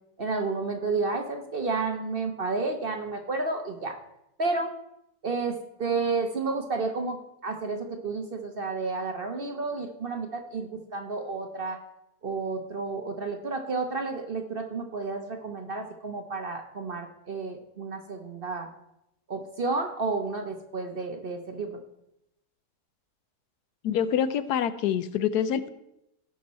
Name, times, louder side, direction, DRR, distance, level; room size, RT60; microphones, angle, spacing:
voice 1, 0.2-4.0 4.4-4.7 5.2-11.8 12.2-18.7 19.3-21.8, right 3 dB, 45° right, 4 dB, 0.9 m, -31 dB
voice 2, 23.8-25.7, left 9 dB, 80° left, 13 dB, 1.1 m, -26 dB
16.5 x 6.1 x 4.2 m, 0.83 s
omnidirectional pair, 1.7 m